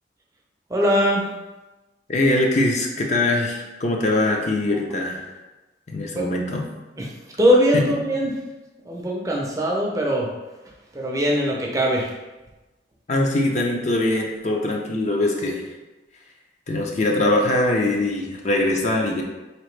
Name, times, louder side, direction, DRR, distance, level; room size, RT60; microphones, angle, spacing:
voice 1, 0.7-1.3 4.7-4.8 6.1-6.3 7.0-8.4 8.9-10.3 10.9-12.1, equal, 20° right, -2 dB, 0.5 m, -21 dB
voice 2, 2.1-5.3 5.9-6.6 7.7-7.8 13.1-15.6 16.7-19.2, left 2 dB, 40° left, 0 dB, 0.5 m, -22 dB
4.1 x 2.9 x 3.2 m, 1.1 s
head